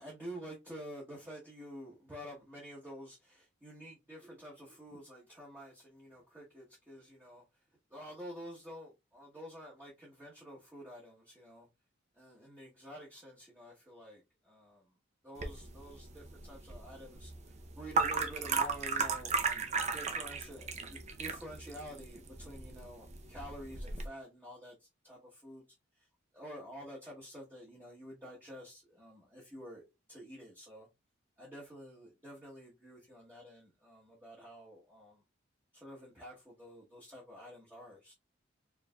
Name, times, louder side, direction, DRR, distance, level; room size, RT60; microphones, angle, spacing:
voice 1, 0.0-7.4 7.9-11.7 12.1-14.8 15.2-17.3 17.8-25.6 26.3-30.9 31.4-35.2 35.7-38.1, equal, 10° right, 1.1 m, -49 dB
sound 1, 15.4-24.1, right 4 dB, 35° right, 0.6 m, -36 dB
4.6 x 3.2 x 2.2 m
head